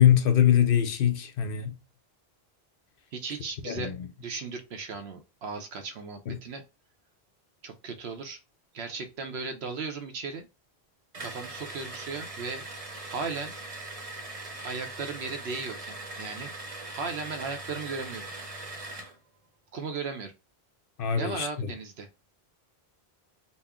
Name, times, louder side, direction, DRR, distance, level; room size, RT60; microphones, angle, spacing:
voice 1, 0.0-1.7 3.7-4.1 6.3-6.4 21.0-21.7, left 9 dB, 65° left, 0.7 m, -23 dB
voice 2, 3.1-3.9 4.2-6.6 7.6-8.4 8.7-10.5 11.2-12.7 13.1-13.6 14.6-16.5 16.9-18.3 19.7-20.3 21.1-22.1, right 4 dB, 80° right, 1.0 m, -36 dB
sound 1, 11.1-19.2, right 2 dB, 35° right, 0.8 m, -40 dB
4.2 x 2.0 x 3.5 m
omnidirectional pair, 1.1 m